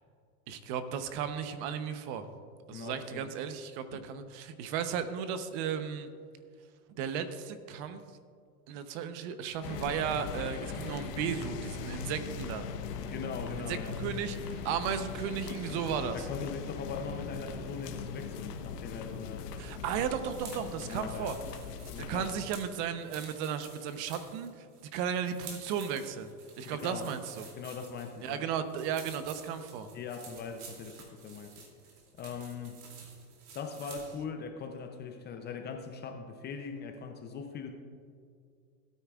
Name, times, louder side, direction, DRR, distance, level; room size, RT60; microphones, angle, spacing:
voice 1, 0.5-2.3 2.7-6.1 7.0-8.0 8.7-12.7 13.7-16.3 19.6-21.4 22.1-24.6 24.9-26.3 26.6-27.4 28.2-29.9, right 8 dB, 45° right, 10 dB, 0.9 m, -35 dB
voice 2, 2.7-3.3 3.9-4.1 12.9-14.0 16.1-19.5 20.8-21.4 21.9-22.3 26.6-27.1 27.6-28.5 29.9-31.7 32.2-32.8 33.5-37.7, left 5 dB, 20° left, 5 dB, 0.5 m, -41 dB
sound 1, 9.6-22.4, left 6 dB, 85° left, 1.2 m, -40 dB
sound 2, 20.3-34.2, right 5 dB, 75° right, 2.9 m, -51 dB
17.0 x 9.4 x 2.4 m, 2.2 s
supercardioid pair, 135°, 47 cm